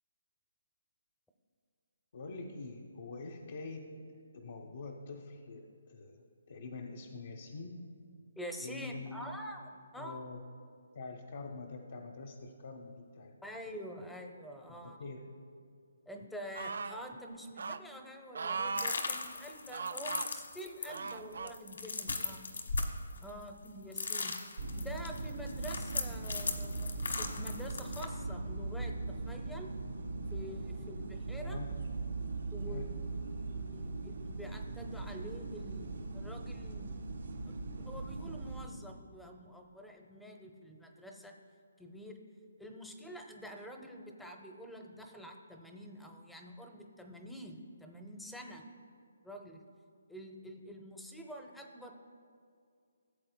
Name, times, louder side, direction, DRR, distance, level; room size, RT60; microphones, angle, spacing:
voice 1, 2.1-3.9 4.3-7.8 8.6-9.3 10.0-10.4 10.9-13.3 13.7-13.8 14.7-15.2 31.4-31.7 32.6-32.8, left 3 dB, 60° left, 0 dB, 0.8 m, -45 dB
voice 2, 8.4-9.6 9.9-10.3 13.4-15.0 16.1-22.4 23.2-24.4 24.8-29.7 30.3-31.6 32.5-33.0 33.5-37.0 37.5-41.4 41.8-42.2 42.6-48.6 49.2-49.6 50.1-51.9, equal, ahead, 3 dB, 0.7 m, -47 dB
sound 1, 16.5-17.0 17.6-17.8 18.3-19.0 19.7-20.3 20.9-21.5 22.3-22.4, right 5 dB, 65° right, 0.3 m, -38 dB
sound 2, 18.8-23.7 23.9-28.1, left 3 dB, 85° left, 1.1 m, -38 dB
sound 3, 24.6-38.7, right 3 dB, 85° right, 1.5 m, -40 dB
16.0 x 7.6 x 2.2 m, 2.3 s
hypercardioid pair, 155°, 0 cm